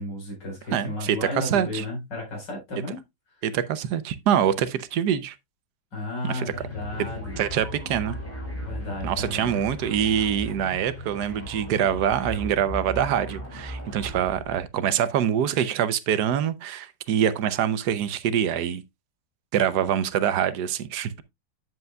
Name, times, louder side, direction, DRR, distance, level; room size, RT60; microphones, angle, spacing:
voice 1, 0.0-3.0 5.9-7.4 8.6-9.6, left 2 dB, 85° left, 5.1 m, -33 dB
voice 2, 0.7-1.8 3.4-5.3 6.2-6.4 7.4-8.2 9.0-18.8 19.5-21.2, right 9 dB, 75° right, 1.2 m, -25 dB
sound 1, 6.5-14.7, equal, 10° left, 2.7 m, -37 dB
9.4 x 7.8 x 2.2 m
omnidirectional pair, 1.9 m